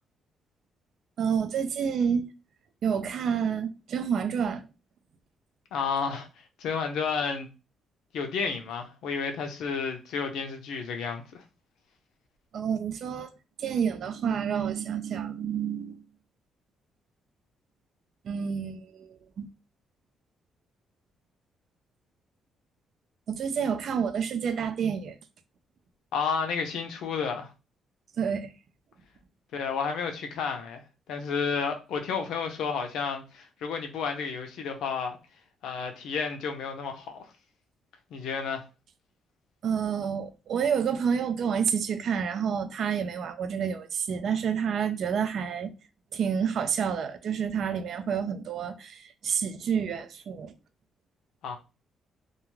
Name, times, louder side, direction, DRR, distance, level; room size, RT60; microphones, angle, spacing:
voice 1, 1.2-2.2 2.8-4.6 12.5-13.3 13.6-16.0 18.2-19.5 23.3-25.2 28.2-28.5 39.6-45.7 46.1-50.5, right 7 dB, 65° right, 0.4 m, -29 dB
voice 2, 5.7-6.3 6.6-7.5 8.1-11.4 26.1-27.5 29.5-30.8 31.1-35.2 35.6-37.3 38.1-38.6 51.4-51.6, left 5 dB, 80° left, 0.5 m, -31 dB
2.4 x 2.3 x 3.1 m
cardioid pair, 90°, 0 cm